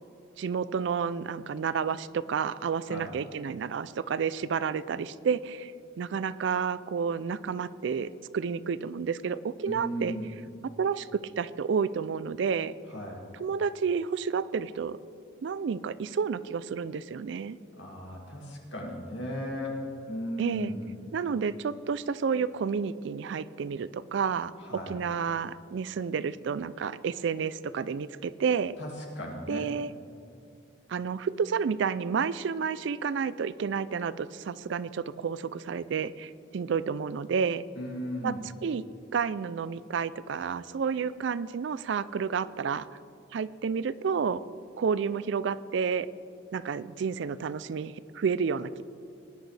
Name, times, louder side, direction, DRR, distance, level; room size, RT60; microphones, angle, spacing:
voice 1, 0.4-5.7 6.0-10.2 10.8-12.7 13.4-15.0 15.4-17.6 20.4-20.7 21.1-24.5 24.9-28.7 29.5-29.9 30.9-37.6 38.2-38.3 38.6-38.9 39.1-42.9 43.3-44.4 44.8-46.1 46.5-48.8, right 6 dB, 70° right, 17 dB, 0.4 m, -30 dB
voice 2, 2.9-3.2 9.7-10.3 12.9-13.2 17.8-20.9 24.6-25.0 28.8-29.7 37.7-38.4, equal, 70° left, -2 dB, 2.5 m, -36 dB
19.5 x 10.5 x 3.3 m, 2.6 s
head